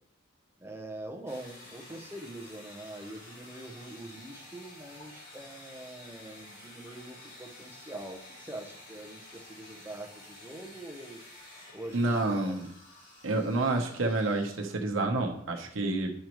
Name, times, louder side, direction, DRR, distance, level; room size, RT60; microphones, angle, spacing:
voice 1, 0.6-11.2 11.7-12.6, right 1 dB, 10° right, 2 dB, 0.8 m, -44 dB
sound 1, 1.3-14.6, left 1 dB, 80° left, 3.1 m, -51 dB
voice 2, 11.9-12.7 13.2-16.1, right 2 dB, 85° right, 3 dB, 1.0 m, -29 dB
9.0 x 5.2 x 3.1 m, 0.69 s
head